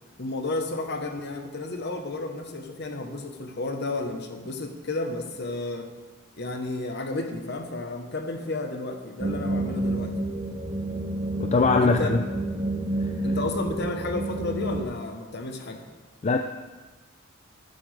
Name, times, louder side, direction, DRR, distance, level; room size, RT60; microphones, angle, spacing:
voice 1, 0.2-5.9 6.3-10.2 11.8-12.1 13.2-15.8, left 2 dB, 55° left, 5 dB, 1.0 m, -32 dB
sound 1, 9.2-14.8, right 1 dB, 20° right, 0.7 m, -29 dB
voice 2, 11.4-12.2 13.0-13.1 16.2-16.4, left 3 dB, 30° left, 5 dB, 0.3 m, -21 dB
14.0 x 7.7 x 3.3 m, 1.3 s
head